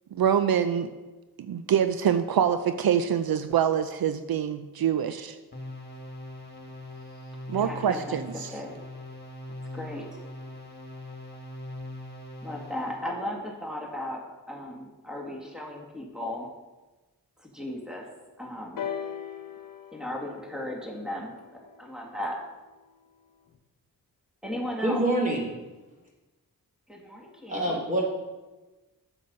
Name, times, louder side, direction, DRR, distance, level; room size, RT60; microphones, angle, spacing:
voice 1, 0.1-0.9 1.4-5.4 7.5-8.5, right 8 dB, 75° right, 10 dB, 0.5 m, -25 dB
sound 1, 5.5-13.1, left 1 dB, 25° left, 1.8 m, -41 dB
voice 2, 7.6-8.8 9.5-10.2 12.4-16.5 17.4-18.1 18.4-18.9 19.9-22.4 24.4-25.0 26.9-27.8, left 1 dB, ahead, 0 dB, 1.7 m, -36 dB
sound 2, 18.8-22.6 23.5-23.6, left 8 dB, 60° left, 0.8 m, -40 dB
voice 3, 24.8-25.4 27.5-28.0, right 1 dB, 20° right, -2 dB, 3.1 m, -25 dB
8.3 x 7.0 x 5.3 m, 1.2 s
wide cardioid pair, 70°, 36 cm